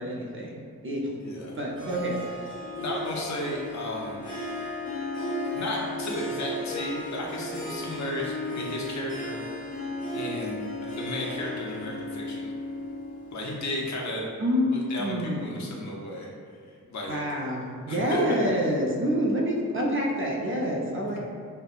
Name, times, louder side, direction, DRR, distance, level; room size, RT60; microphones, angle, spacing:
voice 1, 0.0-1.1 1.5-2.5 14.4-15.8 17.1-21.2, equal, 40° right, -2 dB, 0.5 m, -28 dB
voice 2, 1.2-1.6 2.6-4.4 5.5-9.4 10.1-12.5 13.3-14.3 14.7-16.3 16.7-17.2 17.9-18.4, left 1 dB, 55° left, -2 dB, 0.6 m, -34 dB
Harp, 1.8-14.0, left 1 dB, 25° left, 0.8 m, -35 dB
5.3 x 2.0 x 2.4 m, 2.2 s
wide cardioid pair, 130°, 33 cm